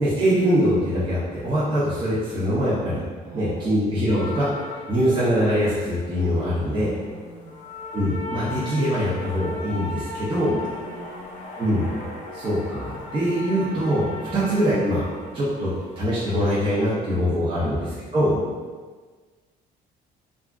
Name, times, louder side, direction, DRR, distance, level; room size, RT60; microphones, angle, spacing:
voice 1, 0.0-3.0 3.3-4.5 4.9-6.9 7.9-10.5 11.6-11.9 12.3-15.0 15.3-17.8 18.1-18.3, equal, 30° right, -10 dB, 0.8 m, -23 dB
voice 2, 3.2-3.8 6.5-7.6 10.4-11.3 17.5-17.8 18.3-18.5, equal, 50° right, -7 dB, 1.1 m, -41 dB
sound 1, 4.1-16.2, left 2 dB, 45° left, 0.6 m, -38 dB
3.4 x 2.4 x 2.4 m, 1.5 s
cardioid pair, 110°, 17 cm